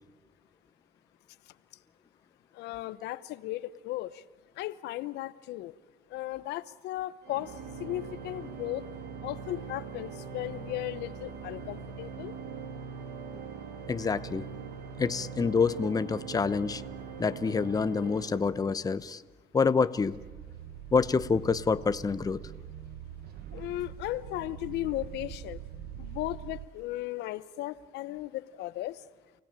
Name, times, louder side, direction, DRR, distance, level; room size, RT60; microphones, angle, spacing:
voice 1, 2.5-4.2 4.6-5.7 6.1-7.5 7.8-8.9 9.2-12.4 23.5-25.6 26.0-29.0, left 16 dB, 85° left, 15 dB, 0.9 m, -36 dB
Organ, 7.2-19.1, right 5 dB, 85° right, 2.8 m, -42 dB
voice 2, 13.9-14.5 15.0-16.8 17.2-19.2 19.5-20.2 20.9-22.4, left 5 dB, 20° left, 13 dB, 0.8 m, -27 dB
sound 1, 20.0-26.7, right 10 dB, 65° right, 1.2 m, -44 dB
29.5 x 17.5 x 8.9 m, 1.3 s
cardioid pair, 110°, 17 cm